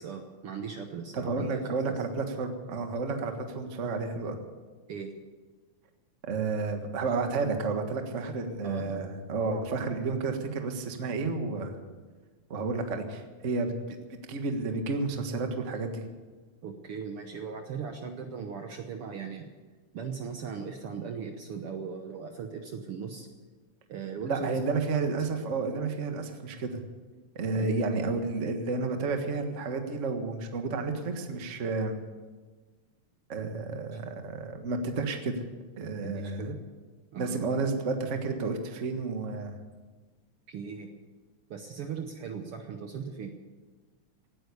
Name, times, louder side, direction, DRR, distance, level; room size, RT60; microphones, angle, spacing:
voice 1, 0.0-1.6 4.9-5.1 8.6-9.0 16.6-19.5 19.9-23.3 23.9-24.5 27.5-27.7 36.0-36.6 37.1-37.4 40.5-40.9 41.5-43.3, right 6 dB, 60° right, 5 dB, 1.7 m, -38 dB
voice 2, 1.1-4.4 6.2-11.8 12.5-16.0 24.2-26.7 27.3-32.0 33.3-35.3 35.8-36.5 37.1-39.6, right 3 dB, 35° right, 5 dB, 1.3 m, -31 dB
17.5 x 9.8 x 8.2 m, 1.3 s
omnidirectional pair, 3.4 m